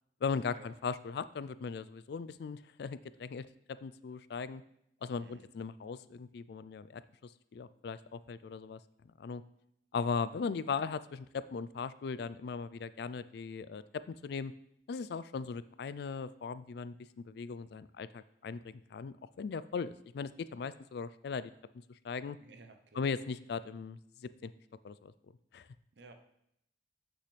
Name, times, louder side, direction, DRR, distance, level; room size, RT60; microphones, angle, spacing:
voice 1, 0.2-4.6 5.0-8.8 9.2-9.4 9.9-14.5 14.9-21.5 22.0-22.4 23.0-24.5 24.8-25.1 25.5-25.7, left 5 dB, 65° left, 15 dB, 0.3 m, -38 dB
voice 2, 5.2-5.5 22.4-23.1 25.9-26.1, right 3 dB, 70° right, 6 dB, 0.8 m, -55 dB
8.3 x 6.4 x 3.3 m, 0.75 s
head